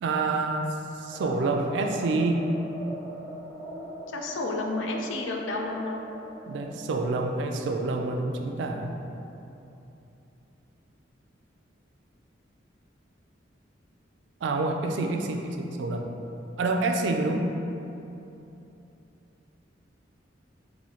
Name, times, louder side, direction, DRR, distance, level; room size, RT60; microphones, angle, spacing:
voice 1, 0.0-0.6 1.0-2.5 6.5-8.9 14.4-16.0 16.6-17.4, right 3 dB, 65° right, 3 dB, 0.3 m, -27 dB
sound 1, 1.1-7.0, right 1 dB, 5° right, 0.6 m, -41 dB
voice 2, 4.1-6.0, left 2 dB, 80° left, 1 dB, 0.4 m, -31 dB
4.3 x 2.7 x 2.8 m, 2.9 s
head